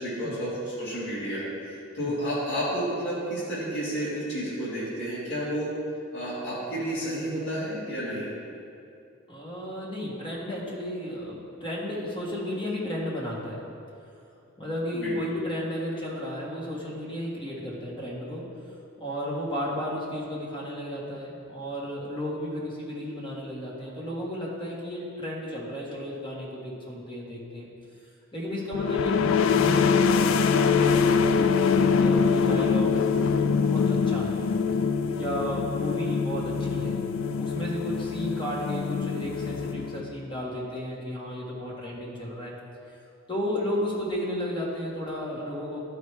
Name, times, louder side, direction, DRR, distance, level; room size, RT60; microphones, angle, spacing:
voice 1, 0.0-5.7 6.1-8.3 14.9-15.2, equal, 65° left, -9 dB, 1.9 m, -31 dB
voice 2, 9.3-13.6 14.6-18.5 19.0-27.7 28.3-34.4 35.1-36.9 37.4-42.5 43.3-45.8, equal, 25° left, -5 dB, 1.6 m, -33 dB
sound 1, 28.7-40.3, left 5 dB, 85° left, 0.3 m, -24 dB
12.0 x 4.8 x 3.3 m, 2.6 s
head